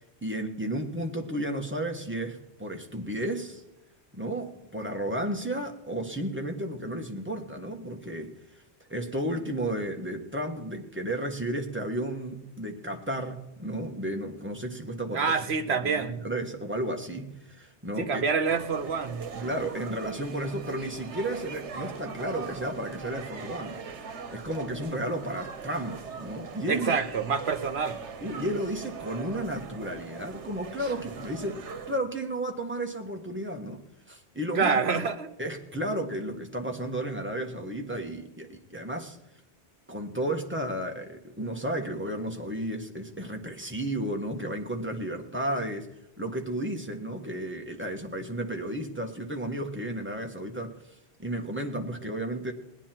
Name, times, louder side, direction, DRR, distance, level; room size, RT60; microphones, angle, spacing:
voice 1, 0.2-3.6 4.1-8.3 8.9-15.3 15.7-18.2 19.4-23.8 24.3-27.0 28.2-33.8 34.1-34.8 35.4-39.2 39.9-45.9 46.2-50.8 51.2-52.5, right 1 dB, 10° right, 2 dB, 1.3 m, -33 dB
voice 2, 15.1-16.2 18.0-19.4 26.7-28.0 34.5-35.3, right 5 dB, 70° right, 9 dB, 1.3 m, -27 dB
sound 1, 18.5-32.0, right 5 dB, 85° right, 1.2 m, -41 dB
20.0 x 9.8 x 4.5 m, 0.91 s
omnidirectional pair, 1.1 m